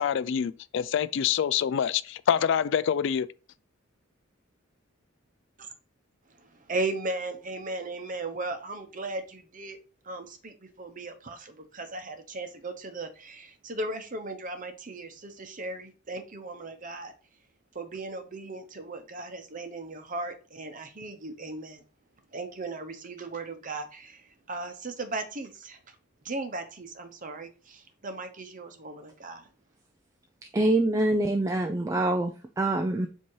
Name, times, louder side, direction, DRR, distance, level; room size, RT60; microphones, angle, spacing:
voice 1, 0.0-3.3, left 8 dB, 60° left, 0.3 m, -26 dB
voice 2, 6.3-9.8 10.0-17.1 17.7-21.8 22.3-25.8 26.2-29.5, right 2 dB, 40° right, 0.9 m, -37 dB
voice 3, 30.5-33.1, right 2 dB, 15° right, 0.4 m, -25 dB
7.3 x 2.8 x 4.7 m
head